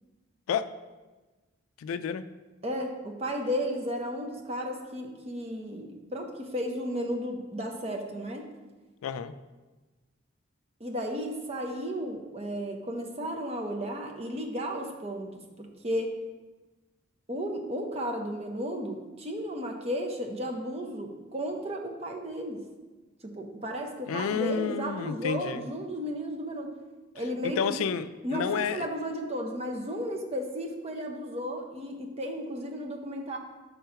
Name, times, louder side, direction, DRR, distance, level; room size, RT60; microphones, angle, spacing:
voice 1, 1.8-2.2 9.0-9.3 24.1-25.7 27.4-28.9, left 7 dB, 85° left, 13 dB, 0.3 m, -30 dB
voice 2, 2.6-8.5 10.8-16.1 17.3-22.6 23.2-26.7 27.1-27.8 28.2-33.4, equal, 30° right, 2 dB, 0.7 m, -34 dB
5.7 x 3.8 x 5.6 m, 1.2 s
head